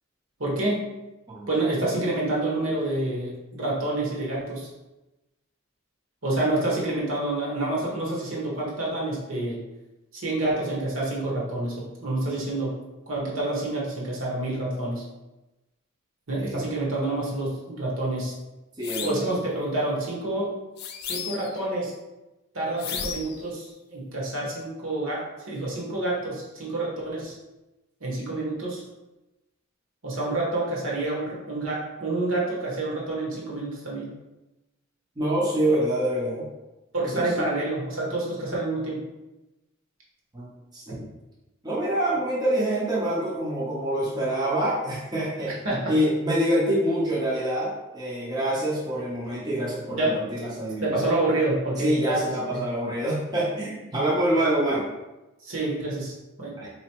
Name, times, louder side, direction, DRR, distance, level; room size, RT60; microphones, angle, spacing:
voice 1, 0.4-0.8 1.5-4.7 6.2-9.6 10.1-11.7 12.0-12.8 13.1-15.0 16.3-18.3 19.0-20.5 21.1-21.9 22.5-27.3 28.0-28.8 30.0-34.1 35.7-35.8 36.9-39.0 45.6-45.9 49.9-50.2 50.8-52.6 54.4-54.5 55.4-56.1 56.4-56.5, right 2 dB, 70° right, -4 dB, 1.2 m, -28 dB
sound 1, 18.8-19.3 20.8-21.6 22.8-23.4, left 7 dB, 50° left, 0.3 m, -34 dB
voice 2, 18.8-19.3 35.2-36.4 37.1-37.3 40.3-41.1 41.6-45.6 45.9-50.9 51.8-54.8 56.6-56.7, right 1 dB, 20° right, -6 dB, 0.6 m, -26 dB
3.9 x 3.0 x 2.9 m, 1.0 s
head